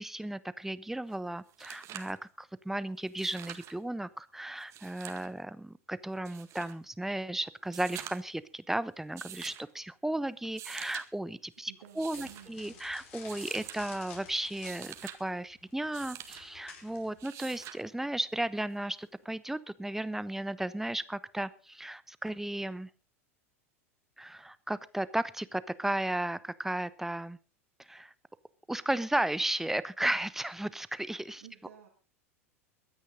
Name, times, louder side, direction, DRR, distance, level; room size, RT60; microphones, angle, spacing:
voice 1, 0.0-14.9 15.2-22.9 24.2-27.4 27.8-28.1 28.7-31.4, right 1 dB, 5° right, 16 dB, 0.9 m, -35 dB
sound 1, 1.1-1.2 1.5-2.2 3.1-3.7 4.6-5.3 6.2-6.7 7.6-8.4 9.2-9.7 10.4-11.1 11.8-12.5 13.3-13.8 14.4-15.2 15.9-16.4 17.2-17.8 19.2-19.3, right 12 dB, 40° right, 1.9 m, -46 dB
voice 2, 11.7-12.8 31.3-31.9, right 10 dB, 70° right, 3 dB, 2.8 m, -53 dB
sound 2, 12.1-17.2, left 6 dB, 65° left, 4.8 m, -52 dB
23.0 x 9.7 x 4.0 m, 0.35 s
figure-of-eight pair, 85°, 8 cm